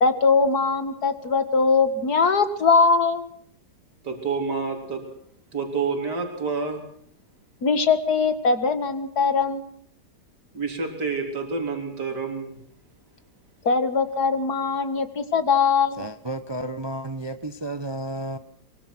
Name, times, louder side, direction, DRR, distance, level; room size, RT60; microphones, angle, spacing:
voice 1, 0.0-3.2 7.6-9.6 13.6-16.1, left 4 dB, 60° left, 10 dB, 2.2 m, -21 dB
voice 2, 4.0-5.0 5.5-6.8 10.5-12.6, right 4 dB, 70° right, 3 dB, 4.2 m, -28 dB
voice 3, 16.0-18.4, right 1 dB, 20° right, 11 dB, 0.8 m, -32 dB
23.0 x 23.0 x 6.1 m, 0.67 s
omnidirectional pair, 1.9 m